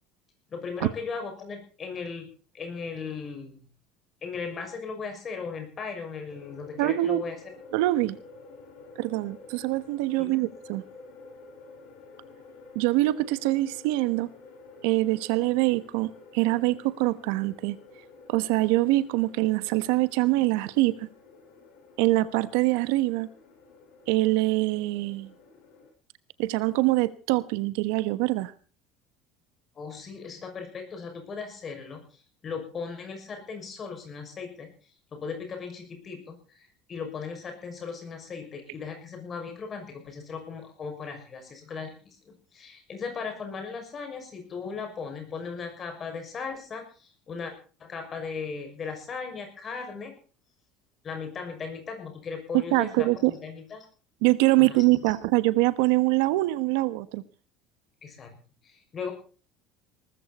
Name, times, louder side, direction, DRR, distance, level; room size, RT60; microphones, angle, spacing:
voice 1, 0.5-2.3 2.5-3.6 4.2-7.4 10.2-10.4 29.8-32.0 32.4-34.7 35.1-36.4 36.9-47.5 47.8-50.1 51.0-53.9 54.6-54.8 55.1-55.2 58.0-58.3 58.6-59.1, left 5 dB, 25° left, 6.2 m, -37 dB
sound 1, 6.3-25.9, left 3 dB, 70° left, 7.9 m, -50 dB
voice 2, 6.8-7.2 7.7-8.2 9.0-10.8 12.7-14.3 14.8-17.8 18.3-21.1 22.0-23.3 24.1-25.3 26.4-28.5 52.7-53.3 54.2-57.2, right 19 dB, 85° right, 1.1 m, -24 dB
19.5 x 14.0 x 4.2 m
cardioid pair, 155°, 0 cm